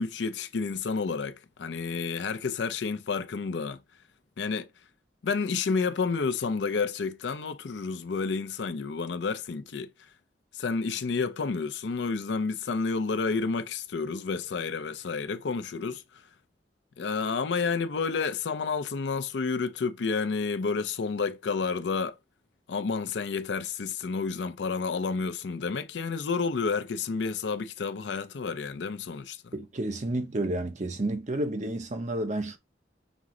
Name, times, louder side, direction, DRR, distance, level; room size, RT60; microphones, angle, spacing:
voice 1, 0.0-3.8 4.4-4.7 5.2-9.9 10.5-16.0 17.0-22.1 22.7-29.5, left 4 dB, 80° left, 0.5 m, -30 dB
voice 2, 29.5-32.6, right 1 dB, 45° right, 0.7 m, -30 dB
6.0 x 2.1 x 3.6 m
head